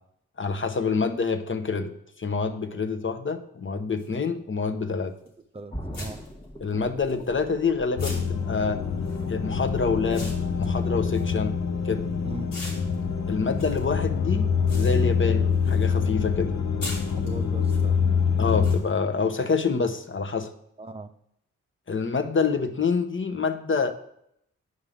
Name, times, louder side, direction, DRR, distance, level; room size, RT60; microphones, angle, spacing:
voice 1, 0.4-5.2 6.6-8.8 9.2-11.6 11.8-12.1 13.3-16.5 18.4-20.5 21.9-23.9, left 4 dB, 40° left, 7 dB, 0.9 m, -27 dB
sound 1, 4.0-4.1 5.3-5.4 5.9-7.6 8.0-12.0 12.5-16.0 16.2-17.8 18.6-18.8, left 1 dB, 85° left, 2.4 m, -42 dB
voice 2, 5.5-6.3 12.2-12.6 17.0-18.1 20.8-21.1, right 3 dB, 20° right, 9 dB, 0.7 m, -40 dB
sound 2, 5.7-11.5 11.9-12.0, equal, 10° left, 1.4 m, -42 dB
sound 3, 8.0-18.8, left 6 dB, 60° left, 0.7 m, -25 dB
9.4 x 5.5 x 3.6 m, 0.75 s
supercardioid pair, 40°, 32 cm